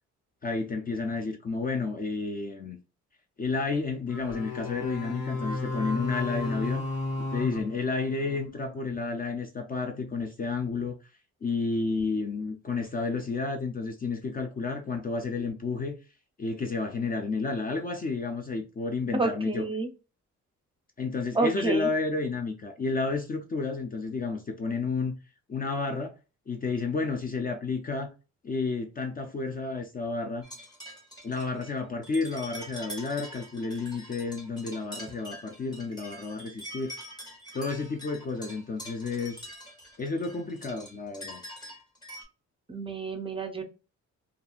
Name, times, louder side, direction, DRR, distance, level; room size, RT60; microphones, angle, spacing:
voice 1, 0.4-2.8 3.4-6.8 7.2-11.0 11.4-16.0 16.4-19.6 21.0-25.2 25.5-26.1 26.5-28.1 28.4-30.4 31.2-36.9 37.5-39.5 40.0-41.4, left 4 dB, 30° left, 0.4 m, -31 dB
sound 1, 4.1-8.5, left 2 dB, 70° left, 1.4 m, -33 dB
voice 2, 19.1-19.9 21.3-21.9 42.7-43.6, right 3 dB, 20° right, 0.6 m, -29 dB
sound 2, 30.4-42.2, equal, 15° left, 1.1 m, -45 dB
2.7 x 2.5 x 2.3 m
cardioid pair, 90°, 30 cm